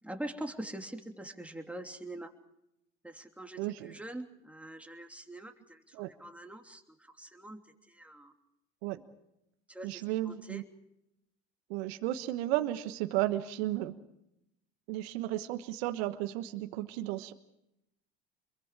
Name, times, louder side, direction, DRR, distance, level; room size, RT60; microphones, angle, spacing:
voice 1, 0.0-2.4 3.0-8.3 9.7-10.7, right 1 dB, 5° right, 3 dB, 3.0 m, -44 dB
voice 2, 3.6-3.9 5.9-6.1 8.8-9.0 9.8-10.6 11.7-14.0 14.9-17.3, right 15 dB, 75° right, 9 dB, 1.3 m, -33 dB
28.5 x 22.5 x 4.9 m, 0.84 s
hypercardioid pair, 80°, 31 cm